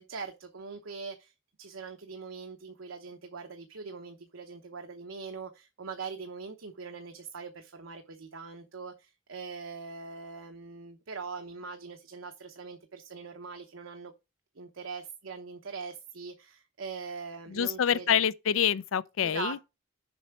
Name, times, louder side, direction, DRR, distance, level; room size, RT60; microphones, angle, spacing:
voice 1, 0.0-1.3 1.6-14.1 14.6-18.2 19.2-19.6, right 5 dB, 90° right, 0.9 m, -42 dB
voice 2, 17.5-19.6, left 8 dB, 90° left, 0.5 m, -26 dB
7.1 x 4.3 x 5.9 m
head